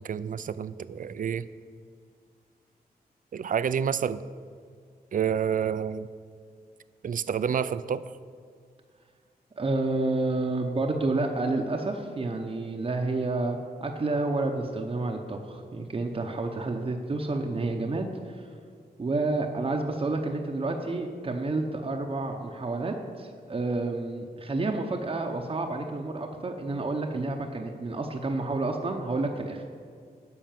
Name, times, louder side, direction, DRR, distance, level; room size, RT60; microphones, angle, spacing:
voice 1, 0.0-1.4 3.3-4.2 5.1-6.1 7.0-8.0, right 8 dB, 55° right, 15 dB, 0.4 m, -28 dB
voice 2, 9.6-18.5 19.0-29.7, right 2 dB, 35° right, 2 dB, 0.8 m, -29 dB
10.5 x 6.3 x 7.4 m, 2.1 s
wide cardioid pair, 110°, 16 cm